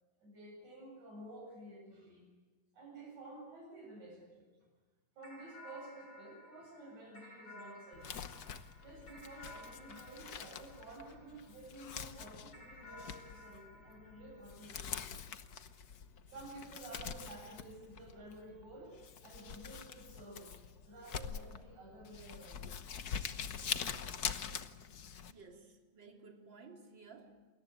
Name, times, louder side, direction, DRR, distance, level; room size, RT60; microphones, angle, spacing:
voice 1, 0.2-2.3 2.7-4.5 5.2-8.4 8.8-15.1 16.3-19.0 19.2-20.5 20.8-22.7, right 2 dB, 75° right, 1 dB, 9.0 m, -52 dB
sound 1, 5.2-11.8 12.5-15.3, left 1 dB, 50° left, 6.6 m, -56 dB
Crumpling crinkling, 7.9-25.3, left 7 dB, 80° left, 0.8 m, -45 dB
voice 2, 25.3-27.4, right 4 dB, 40° right, 2 dB, 3.8 m, -56 dB
29.5 x 22.0 x 9.1 m, 1.3 s
omnidirectional pair, 3.3 m